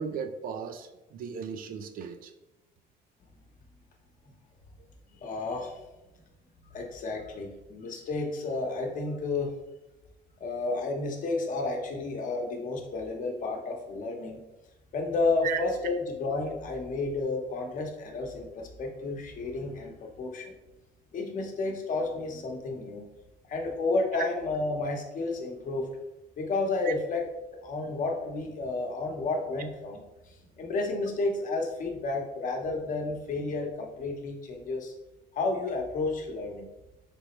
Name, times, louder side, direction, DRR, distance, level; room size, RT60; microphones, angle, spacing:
voice 1, 0.0-2.3 15.4-15.6 26.8-26.9, right 7 dB, 60° right, 8 dB, 0.4 m, -35 dB
voice 2, 5.2-5.8 6.7-9.5 10.4-14.4 14.9-20.6 21.1-23.1 23.5-25.9 26.4-27.2 27.6-34.9 35.3-36.7, left 3 dB, 50° left, 2 dB, 0.9 m, -31 dB
4.0 x 3.4 x 3.0 m, 0.98 s
cardioid pair, 110°, 17 cm